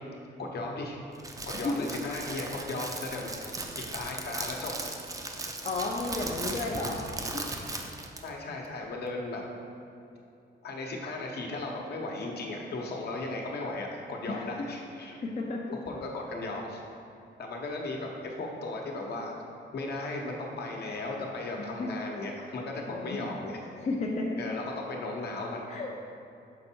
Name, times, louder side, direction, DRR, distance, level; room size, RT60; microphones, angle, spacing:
voice 1, 0.4-1.0 1.4-3.4 3.9-4.7 8.2-9.4 10.6-15.2 15.9-16.8 17.4-18.1 18.4-19.4 19.7-23.6 24.4-25.7, left 2 dB, 60° left, 0 dB, 0.9 m, -36 dB
Crackle, 1.1-8.3, right 2 dB, 20° right, 0.4 m, -37 dB
voice 2, 1.5-1.9 5.6-7.1 7.3-7.5 14.3-14.7 15.1-15.7 21.6-21.9 22.8-23.3 23.8-24.4 25.7-25.9, left 3 dB, 35° left, -1 dB, 0.5 m, -33 dB
6.4 x 4.5 x 4.4 m, 2.7 s
wide cardioid pair, 155°, 19 cm